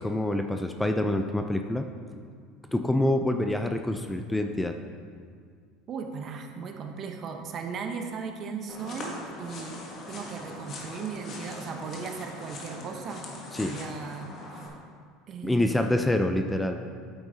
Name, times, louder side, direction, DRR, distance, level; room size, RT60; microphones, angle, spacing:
voice 1, 0.0-1.9 2.7-4.7 13.5-13.7 15.4-16.8, left 1 dB, 10° left, 6 dB, 0.4 m, -26 dB
voice 2, 5.9-9.8 10.1-13.3 13.6-14.7 15.3-16.1, right 5 dB, 45° right, 4 dB, 0.9 m, -37 dB
sound 1, 8.7-14.7, left 2 dB, 45° left, 1.5 m, -41 dB
9.1 x 7.7 x 2.7 m, 2.1 s
supercardioid pair, 95°, 0 cm